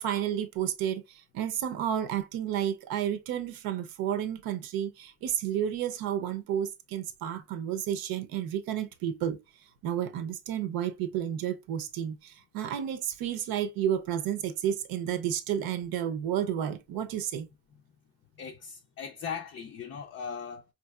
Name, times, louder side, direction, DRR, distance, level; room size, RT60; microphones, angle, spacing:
voice 1, 0.0-9.4 9.8-17.5, right 10 dB, 80° right, 0.8 m, -31 dB
voice 2, 18.4-20.6, left 6 dB, 35° left, 0.4 m, -39 dB
5.0 x 2.7 x 2.3 m
cardioid pair, 175°, 36 cm